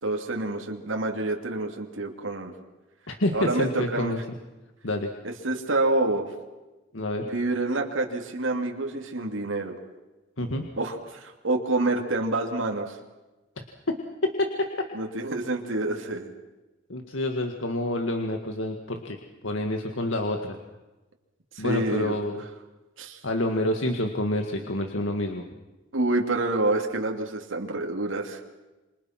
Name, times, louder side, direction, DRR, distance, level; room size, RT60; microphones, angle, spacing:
voice 1, 0.0-2.5 3.3-4.2 5.2-6.3 7.2-9.7 10.8-13.0 14.9-16.3 21.5-22.2 23.0-23.2 25.9-28.4, right 2 dB, 80° right, 2 dB, 2.8 m, -27 dB
voice 2, 3.1-4.2 4.8-5.1 6.9-7.3 10.4-10.6 13.9-14.0 14.4-14.5 16.9-19.2 19.4-20.6 21.6-22.4 23.2-25.4, left 1 dB, 75° left, 4 dB, 2.0 m, -28 dB
27.5 x 26.5 x 6.0 m, 1.1 s
head